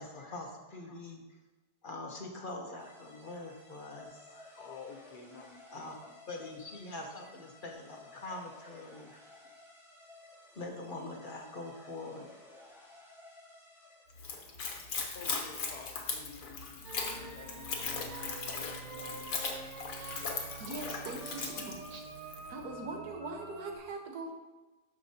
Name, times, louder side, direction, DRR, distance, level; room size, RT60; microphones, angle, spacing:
voice 1, 0.0-1.4 1.8-4.6 5.7-5.9 6.3-9.2 10.5-12.3, left 2 dB, 35° left, 1 dB, 1.0 m, -44 dB
sound 1, 2.8-14.4, left 1 dB, ahead, 1.9 m, -55 dB
voice 2, 4.6-6.5 15.1-19.2, left 5 dB, 80° left, 3 dB, 1.5 m, -51 dB
Splash splatter / Trickle dribble, 14.2-22.5, left 4 dB, 60° left, 1.4 m, -39 dB
sound 2, 16.8-23.8, right 3 dB, 50° right, 1.5 m, -46 dB
voice 3, 19.9-20.2 20.6-22.2 22.5-24.3, right 3 dB, 75° right, 2 dB, 1.6 m, -42 dB
12.5 x 5.5 x 2.8 m, 1.2 s
omnidirectional pair, 1.7 m